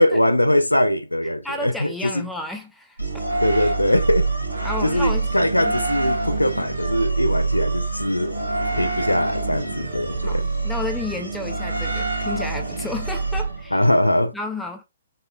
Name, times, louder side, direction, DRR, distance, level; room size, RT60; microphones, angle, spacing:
voice 1, 0.0-2.3 3.4-4.3 4.8-8.4 8.7-10.4 13.7-14.3, left 1 dB, 85° left, 0.3 m, -21 dB
voice 2, 1.4-3.0 4.6-5.3 5.7-5.8 10.2-13.8 14.3-14.8, left 2 dB, 5° left, 0.5 m, -32 dB
sound 1, 3.0-13.9, right 3 dB, 80° right, 0.7 m, -26 dB
sound 2, 8.4-12.1, left 2 dB, 15° right, 1.1 m, -48 dB
3.5 x 2.3 x 2.3 m
figure-of-eight pair, 120°, 0 cm